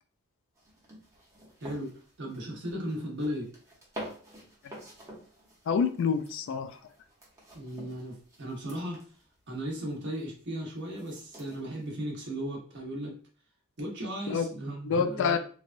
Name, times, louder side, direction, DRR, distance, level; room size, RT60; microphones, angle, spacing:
sound 1, 0.6-11.9, equal, 15° right, 0.8 m, -49 dB
voice 1, 1.6-1.9 2.2-3.5 7.5-9.0 9.5-13.1 13.8-15.4, equal, 55° right, -2 dB, 1.0 m, -36 dB
voice 2, 5.7-6.8 14.3-14.5 14.8-15.4, left 6 dB, 60° left, 8 dB, 0.3 m, -27 dB
3.2 x 2.2 x 2.5 m, 0.42 s
head